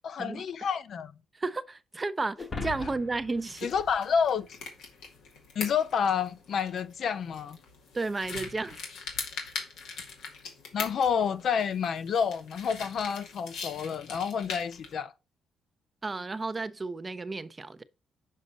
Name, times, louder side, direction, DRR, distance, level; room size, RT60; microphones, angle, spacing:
voice 1, 0.0-1.1 3.6-4.5 5.5-7.6 10.7-15.1, left 7 dB, 60° left, 0.6 m, -29 dB
voice 2, 1.3-3.7 7.9-8.8 16.0-17.8, right 3 dB, 25° right, 0.6 m, -33 dB
sound 1, 2.4-4.9, left 4 dB, 35° left, 1.3 m, -40 dB
sound 2, 3.4-14.9, left 5 dB, 90° left, 2.1 m, -42 dB
6.6 x 5.1 x 4.1 m
cardioid pair, 90°, 0 cm